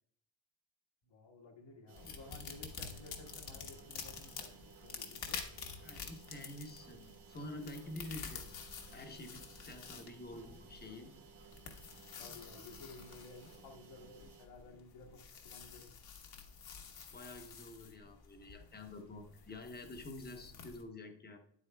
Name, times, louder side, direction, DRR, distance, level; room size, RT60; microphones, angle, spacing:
voice 1, 1.0-5.4 12.2-15.9, left 3 dB, 75° left, 1 dB, 1.6 m, -54 dB
sound 1, 1.9-20.8, left 6 dB, 55° left, 1.1 m, -49 dB
sound 2, 1.9-14.5, right 6 dB, 80° right, 1.8 m, -59 dB
voice 2, 5.8-8.6 8.9-11.1 16.9-21.4, left 1 dB, 20° left, 4 dB, 0.8 m, -48 dB
9.8 x 8.3 x 2.2 m, 0.68 s
cardioid pair, 165°, 45 cm